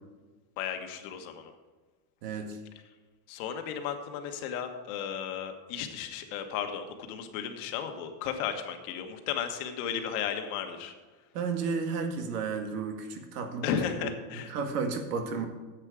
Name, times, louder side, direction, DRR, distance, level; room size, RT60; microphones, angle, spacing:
voice 1, 0.6-1.5 3.3-10.9 13.6-14.5, left 8 dB, 65° left, 6 dB, 1.5 m, -34 dB
voice 2, 2.2-2.6 11.3-13.7 14.0-15.4, right 5 dB, 80° right, 5 dB, 1.9 m, -33 dB
9.8 x 8.3 x 4.8 m, 1.3 s
supercardioid pair, 135°, 46 cm